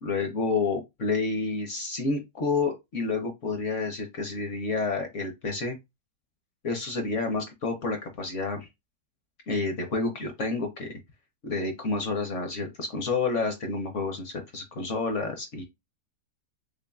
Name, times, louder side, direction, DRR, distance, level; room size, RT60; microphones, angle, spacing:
voice 1, 0.0-5.8 6.6-8.7 9.5-11.0 11.4-15.6, left 3 dB, 60° left, 0.8 m, -29 dB
3.8 x 3.5 x 2.2 m
omnidirectional pair, 1.9 m